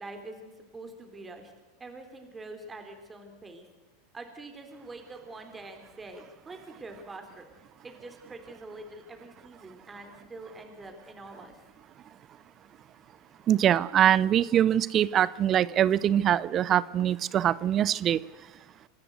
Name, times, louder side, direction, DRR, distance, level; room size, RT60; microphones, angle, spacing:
voice 1, 0.0-1.5 1.8-3.7 4.1-7.5 7.8-11.6, right 2 dB, 20° right, 5 dB, 3.9 m, -45 dB
voice 2, 13.5-18.2, right 10 dB, 35° right, 20 dB, 0.6 m, -23 dB
26.0 x 13.0 x 8.2 m, 1.2 s
hypercardioid pair, 90°, 0 cm